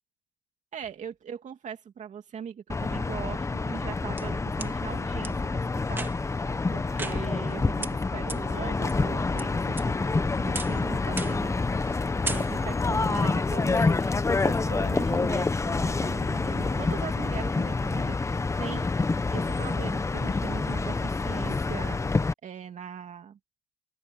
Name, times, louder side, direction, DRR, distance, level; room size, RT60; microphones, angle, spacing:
voice 1, 0.7-5.6 5.9-6.1 6.7-11.6 12.2-18.9 19.3-22.0 22.4-23.4, right 8 dB, 45° right, 2.6 m, -40 dB
sound 1, 2.7-22.3, left 3 dB, 15° left, 1.0 m, -27 dB
sound 2, 3.7-4.7 5.2-5.3 5.9-6.4 7.0-7.5 7.8-7.9 8.3-8.4 8.9-9.4 9.8-10.2 10.5-10.8 11.2-11.5 11.8-12.0 12.2-12.8, right 2 dB, 10° right, 2.1 m, -36 dB
open air
cardioid pair, 110°, 17 cm